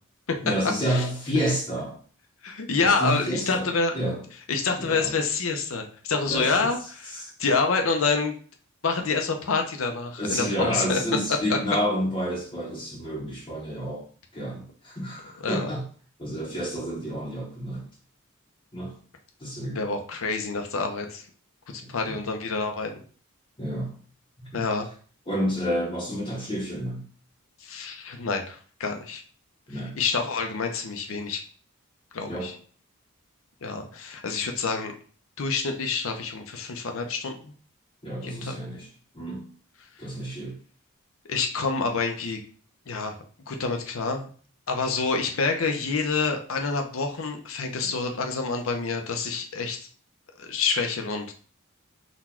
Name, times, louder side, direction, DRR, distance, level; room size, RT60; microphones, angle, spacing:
voice 1, 0.4-2.0 2.8-3.7 3.9-4.2 4.8-5.1 6.2-6.7 7.1-7.3 10.2-14.0 14.3-15.8 16.2-17.9 18.7-18.9 19.4-19.8 21.8-22.2 23.6-24.0 24.4-24.7 25.3-27.0 29.7-30.0 32.3-32.5 38.0-38.9 39.1-39.4 40.0-40.6, equal, 25° left, 0.7 m, -29 dB
voice 2, 2.4-3.9 4.5-8.3 8.8-11.0 11.5-11.6 15.4-15.7 19.7-21.2 21.7-23.0 24.5-24.9 27.6-29.2 29.7-31.4 32.1-32.6 33.6-34.9 35.4-37.5 38.2-38.6 41.3-42.4 42.9-43.2 43.5-44.3 44.7-49.8 50.4-51.3, left 4 dB, 65° left, 0.6 m, -27 dB
4.0 x 2.3 x 4.3 m
head